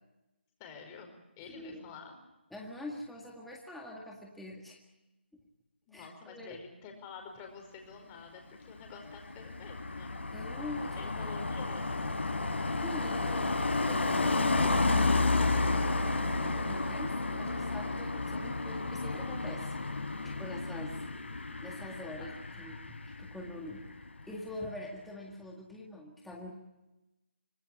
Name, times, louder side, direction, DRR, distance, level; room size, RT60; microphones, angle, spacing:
voice 1, 0.6-2.1 5.9-10.1 10.9-11.8 20.6-21.1 21.9-22.7, left 5 dB, 20° left, 4 dB, 5.0 m, -49 dB
voice 2, 1.4-1.9 2.5-4.8 5.3-5.4 5.9-6.6 10.3-11.0 11.2-11.3 12.8-19.8 20.2-21.0 21.5-23.9 24.2-26.5, left 1 dB, ahead, -2 dB, 1.9 m, -44 dB
Car passing by, 8.7-23.5 23.7-24.1, left 3 dB, 85° left, 5.5 m, -31 dB
26.5 x 19.5 x 8.6 m, 0.99 s
hypercardioid pair, 165°, 6 cm